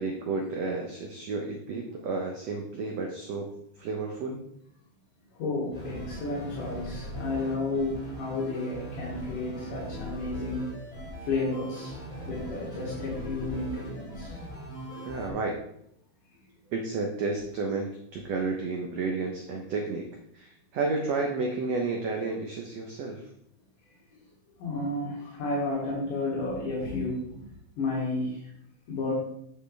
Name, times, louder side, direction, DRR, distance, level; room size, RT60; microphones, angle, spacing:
voice 1, 0.0-3.5 3.8-4.4 15.0-15.6 16.7-20.1 20.3-23.2, right 3 dB, 75° right, 2 dB, 1.5 m, -31 dB
voice 2, 5.4-10.7 11.2-12.0 12.2-14.4 24.6-27.5 27.8-28.4 28.9-29.1, left 2 dB, 65° left, -5 dB, 3.3 m, -32 dB
sound 1, 5.7-15.3, equal, 20° left, 4.1 m, -39 dB
9.0 x 7.3 x 3.4 m, 0.73 s
omnidirectional pair, 4.3 m